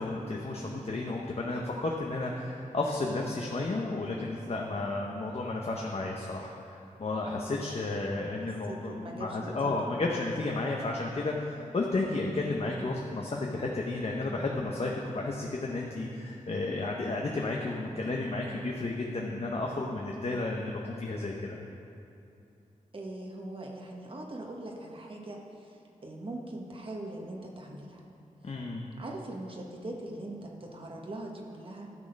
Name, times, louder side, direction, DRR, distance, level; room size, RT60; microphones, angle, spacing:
voice 1, 0.0-21.6 28.4-28.9, left 2 dB, 50° left, -1 dB, 0.9 m, -32 dB
voice 2, 8.4-9.8 22.9-25.4 26.0-28.0 29.0-31.9, right 1 dB, 40° right, 0 dB, 1.2 m, -41 dB
12.0 x 6.4 x 5.2 m, 2.6 s
wide cardioid pair, 85°, 14 cm